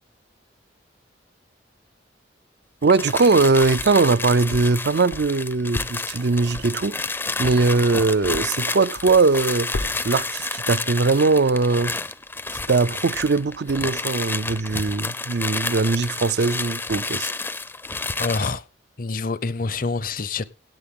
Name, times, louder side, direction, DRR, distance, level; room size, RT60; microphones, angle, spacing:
sound 1, 2.8-18.6, left 3 dB, 10° left, 0.5 m, -30 dB
voice 1, 2.8-7.0 7.4-9.7 10.0-11.9 12.7-17.3, right 3 dB, 60° right, 0.5 m, -20 dB
sound 2, 3.3-4.1 4.5-8.7 9.0-9.5 9.7-10.2, left 2 dB, 85° left, 0.8 m, -35 dB
Breathing, 9.6-11.4, right 3 dB, 85° right, 2.0 m, -44 dB
voice 2, 18.2-18.6 19.0-20.4, left 4 dB, 50° left, 0.7 m, -26 dB
17.0 x 7.8 x 3.7 m
head